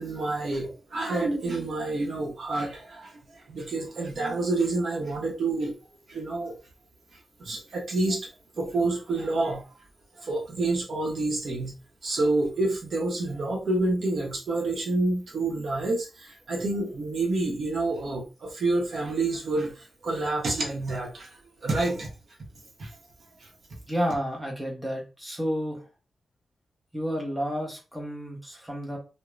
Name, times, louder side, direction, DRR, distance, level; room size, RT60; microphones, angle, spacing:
voice 1, 0.0-3.2 3.5-5.7 6.1-6.5 7.4-8.3 8.6-9.6 10.2-11.8 12.0-21.3 21.6-22.1 22.4-22.5 22.8-22.9 23.4-23.5, right 2 dB, 55° right, 0 dB, 0.8 m, -28 dB
voice 2, 23.9-25.8 26.9-29.0, equal, ahead, -1 dB, 0.8 m, -31 dB
2.4 x 2.0 x 3.1 m, 0.31 s
wide cardioid pair, 145°, 0 cm